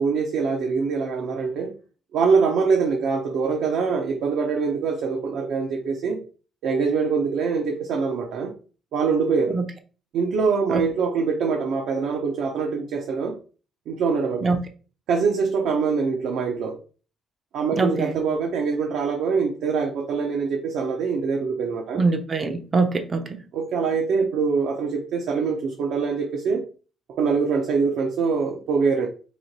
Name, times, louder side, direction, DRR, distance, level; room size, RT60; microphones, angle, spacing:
voice 1, 0.0-1.7 2.1-6.2 6.6-8.5 8.9-9.6 10.1-13.3 13.9-14.4 15.1-16.8 17.5-22.0 23.5-26.6 27.1-29.1, right 5 dB, 70° right, 0.6 m, -24 dB
voice 2, 17.7-18.2 21.9-23.4, right 3 dB, 25° right, 0.4 m, -23 dB
3.1 x 2.9 x 4.0 m
cardioid pair, 160°, 0 cm